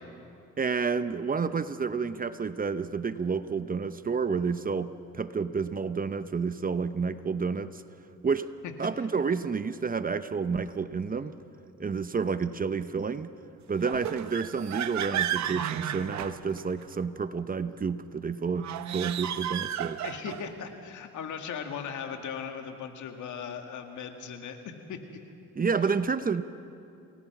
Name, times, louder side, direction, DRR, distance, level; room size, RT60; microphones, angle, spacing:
voice 1, 0.6-7.8 8.2-8.5 8.8-11.4 11.8-13.3 13.7-20.0 25.6-26.4, right 5 dB, 30° right, 12 dB, 0.8 m, -30 dB
sound 1, 13.8-16.9 18.5-20.5, right 10 dB, 65° right, 0.9 m, -33 dB
voice 2, 20.0-24.6 24.9-25.2, left 7 dB, 75° left, 5 dB, 2.2 m, -38 dB
28.0 x 19.5 x 6.1 m, 2.7 s
cardioid pair, 90°, 30 cm